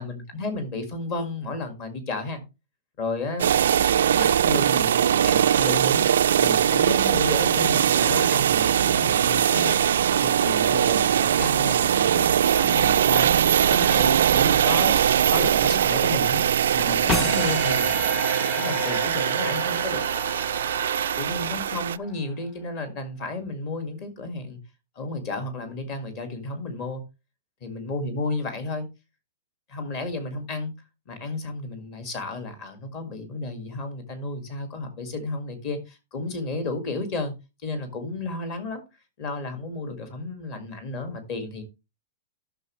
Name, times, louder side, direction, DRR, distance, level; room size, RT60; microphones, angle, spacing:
voice 1, 0.0-2.4 3.0-3.5 4.1-6.0 6.4-16.4 16.7-18.0 18.5-20.0 21.1-24.6 25.0-27.0 27.6-28.9 29.7-30.7 31.1-37.3 37.6-38.8 39.2-41.6, left 2 dB, 30° left, 1.8 m, -32 dB
sound 1, 3.4-22.0, right 9 dB, 85° right, 0.3 m, -21 dB
sound 2, 17.1-22.3, left 3 dB, 10° left, 0.6 m, -32 dB
12.0 x 6.2 x 3.1 m
supercardioid pair, 175°, 0 cm